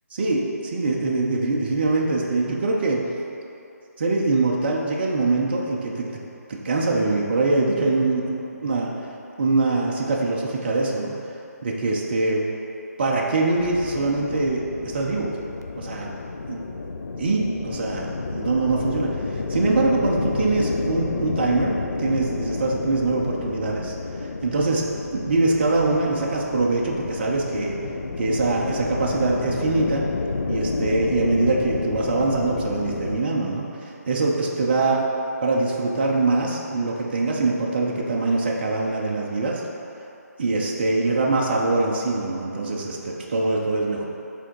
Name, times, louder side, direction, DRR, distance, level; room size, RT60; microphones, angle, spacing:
voice 1, 0.1-3.0 4.0-6.2 6.5-8.2 8.6-8.9 9.4-11.2 11.6-12.4 13.0-15.3 15.8-16.1 16.5-16.6 17.2-19.1 19.5-23.9 24.4-24.8 25.1-27.8 28.2-30.1 30.5-33.7 34.1-35.0 35.4-39.6 40.4-44.0, right 3 dB, 35° right, -2 dB, 0.7 m, -23 dB
sound 1, 13.6-33.2, left 3 dB, 65° left, 0.5 m, -30 dB
6.7 x 3.7 x 4.6 m, 2.8 s
figure-of-eight pair, 160°, 9 cm